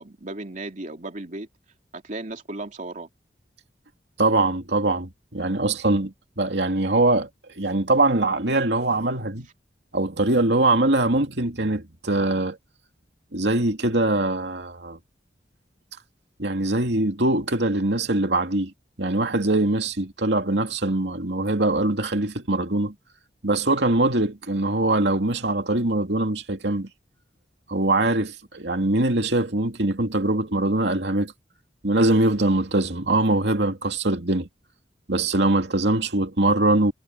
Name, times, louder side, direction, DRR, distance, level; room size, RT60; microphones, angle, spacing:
voice 1, 0.0-1.5 1.9-3.1, right 2 dB, 45° right, 3.0 m, -35 dB
voice 2, 4.2-7.3 7.5-9.5 9.9-12.6 13.3-15.0 16.4-18.7 19.0-22.9 23.4-26.9 27.7-31.3 31.8-34.5 35.1-36.9, right 2 dB, 70° right, 2.7 m, -22 dB
head